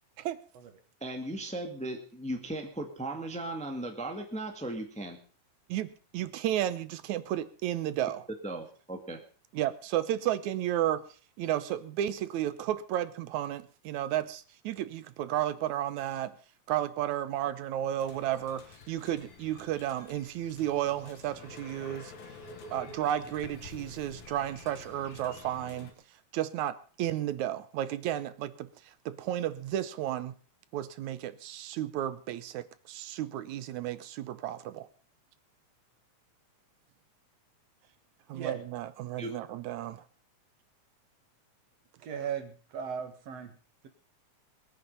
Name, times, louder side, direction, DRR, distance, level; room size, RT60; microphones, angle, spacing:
voice 1, 1.0-5.2 8.4-9.2 39.2-39.3, right 1 dB, 5° left, 4 dB, 1.2 m, -37 dB
voice 2, 6.1-8.2 9.5-11.0 11.4-16.3 16.7-22.1 22.7-25.9 26.3-30.3 30.7-34.9 38.3-40.0, right 12 dB, 75° right, 14 dB, 2.1 m, -33 dB
sound 1, 18.0-25.9, left 4 dB, 70° left, 3.5 m, -49 dB
voice 3, 38.3-38.7 42.1-43.5, right 7 dB, 60° right, 7 dB, 2.5 m, -36 dB
21.0 x 9.4 x 5.4 m, 0.39 s
omnidirectional pair, 3.5 m